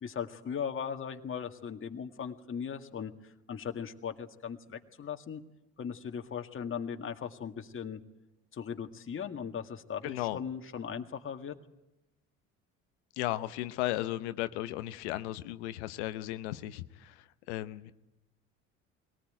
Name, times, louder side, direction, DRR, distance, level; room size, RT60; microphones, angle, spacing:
voice 1, 0.0-5.4 5.8-8.0 8.5-11.6, left 7 dB, 40° left, 5 dB, 1.8 m, -38 dB
voice 2, 10.0-10.4 13.2-17.9, left 15 dB, 85° left, 11 dB, 0.9 m, -35 dB
21.5 x 18.5 x 9.2 m, 0.98 s
hypercardioid pair, 70°, 33 cm